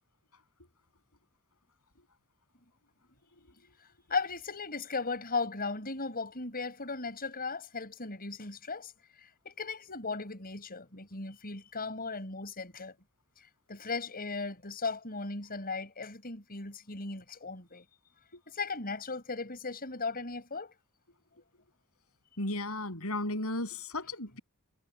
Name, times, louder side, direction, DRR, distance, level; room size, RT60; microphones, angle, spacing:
voice 1, 4.1-8.9 9.2-12.9 13.7-17.8 18.5-20.7, left 4 dB, 40° left, 6.4 m, -37 dB
voice 2, 22.4-24.4, left 2 dB, 75° left, 7.8 m, -34 dB
head